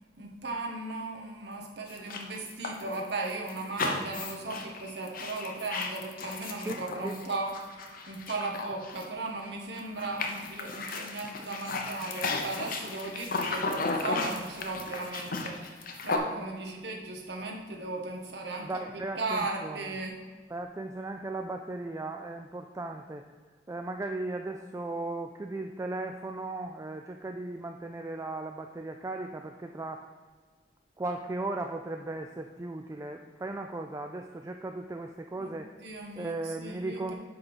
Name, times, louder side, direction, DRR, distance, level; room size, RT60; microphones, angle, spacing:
voice 1, 0.2-20.2 35.4-35.5 35.8-37.1, right 3 dB, 65° right, 0 dB, 1.4 m, -37 dB
sound 1, 1.9-9.5 9.7-16.2, left 3 dB, 50° left, 0.8 m, -35 dB
voice 2, 6.6-7.2 18.6-20.0 20.5-23.2 23.7-30.0 31.0-35.7 36.2-37.1, right 2 dB, 15° right, 5 dB, 0.3 m, -37 dB
8.7 x 3.9 x 6.1 m, 1.5 s
head